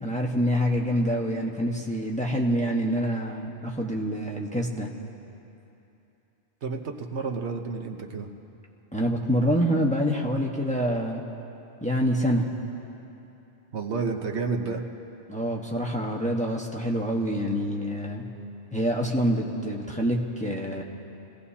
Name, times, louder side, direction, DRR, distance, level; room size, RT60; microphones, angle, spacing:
voice 1, 0.0-4.9 8.9-11.2 11.8-12.4 15.3-18.2 18.7-20.8, equal, 5° left, -2 dB, 1.2 m, -26 dB
voice 2, 6.6-8.3 13.7-14.8, right 4 dB, 80° right, 3 dB, 1.3 m, -30 dB
28.5 x 17.5 x 2.9 m, 2.9 s
omnidirectional pair, 1.1 m